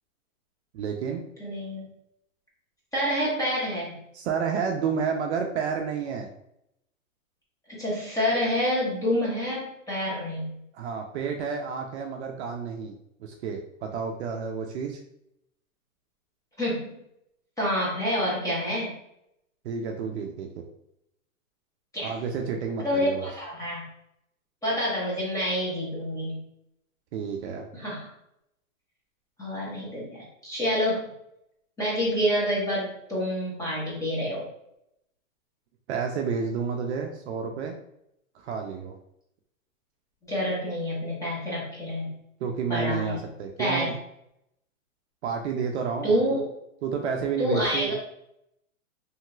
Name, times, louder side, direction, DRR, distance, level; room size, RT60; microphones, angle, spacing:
voice 1, 0.7-1.2 4.1-6.3 10.7-15.0 19.6-20.5 22.0-23.3 27.1-27.7 35.9-37.8 38.3-39.0 42.4-43.9 45.2-46.4 46.8-47.9, right 6 dB, 55° right, 2 dB, 0.5 m, -30 dB
voice 2, 1.4-1.8 2.9-4.0 7.7-10.6 16.6-17.0 17.6-18.9 21.9-22.1 22.8-23.9 24.6-26.4 27.7-28.1 29.4-31.0 31.8-34.5 40.3-42.1 42.7-43.2 43.6-43.9 46.0-46.4 47.4-47.9, equal, 10° left, -6 dB, 1.0 m, -27 dB
3.1 x 2.8 x 2.3 m, 0.78 s
hypercardioid pair, 140°, 42 cm